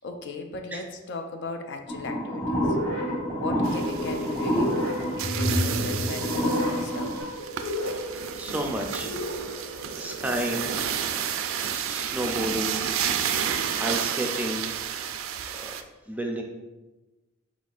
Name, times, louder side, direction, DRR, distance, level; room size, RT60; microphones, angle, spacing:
voice 1, 0.0-2.8 3.4-7.2, left 3 dB, 55° left, 6 dB, 0.4 m, -37 dB
sound 1, 1.9-7.2, equal, 20° left, 1.0 m, -28 dB
sound 2, 2.5-10.5, equal, 80° left, 1.0 m, -34 dB
sound 3, 3.6-15.8, right 8 dB, 75° right, 0.4 m, -31 dB
voice 2, 8.0-9.1 10.0-10.7 11.6-12.8 13.1-14.7 15.6-15.7 16.1-16.4, right 1 dB, 10° right, 2 dB, 0.4 m, -32 dB
5.0 x 4.1 x 2.4 m, 1.1 s
head